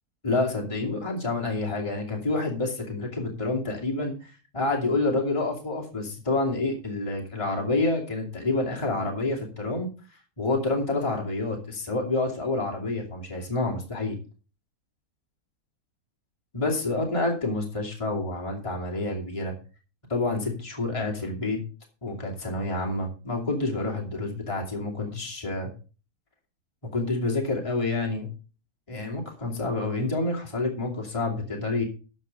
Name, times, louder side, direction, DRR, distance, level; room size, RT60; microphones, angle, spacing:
voice 1, 0.2-9.9 10.4-14.2 16.5-19.5 20.1-21.6 22.0-25.7 26.9-28.3 28.9-31.8, left 2 dB, 20° left, -1 dB, 2.6 m, -28 dB
14.5 x 5.5 x 5.4 m, 0.36 s
omnidirectional pair, 1.6 m